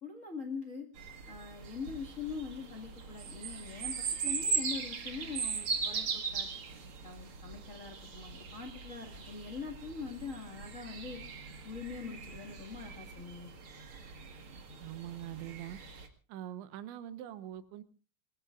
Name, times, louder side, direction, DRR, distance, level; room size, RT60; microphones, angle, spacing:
voice 1, 0.0-0.9 1.3-6.5 7.0-11.2 11.6-13.5, left 5 dB, 70° left, 3 dB, 0.7 m, -43 dB
sound 1, 0.9-16.1, right 5 dB, 55° right, 1.4 m, -39 dB
voice 2, 14.8-15.8 16.3-17.8, right 12 dB, 80° right, 11 dB, 3.3 m, -43 dB
25.5 x 20.0 x 2.5 m, 0.37 s
omnidirectional pair, 5.3 m